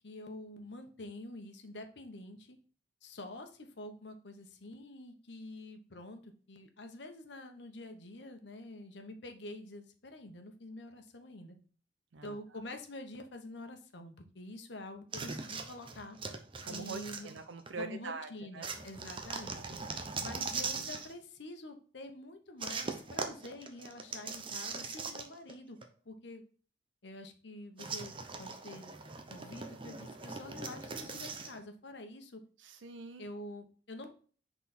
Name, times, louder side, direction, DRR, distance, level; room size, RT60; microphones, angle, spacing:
voice 1, 0.0-2.6 3.0-11.6 12.2-16.2 16.7-17.3 17.8-25.8 26.0-26.4 27.0-28.9 29.3-32.4 33.2-34.2, left 1 dB, 70° left, 6 dB, 1.0 m, -47 dB
sound 1, 15.1-17.8 18.6-21.1 22.6-25.5 25.8-25.9 27.8-31.6, right 4 dB, 30° right, 0.7 m, -40 dB
voice 2, 16.6-18.3 18.5-18.7 32.6-33.3, right 3 dB, 80° right, 8 dB, 0.5 m, -43 dB
5.9 x 4.1 x 4.2 m, 0.41 s
head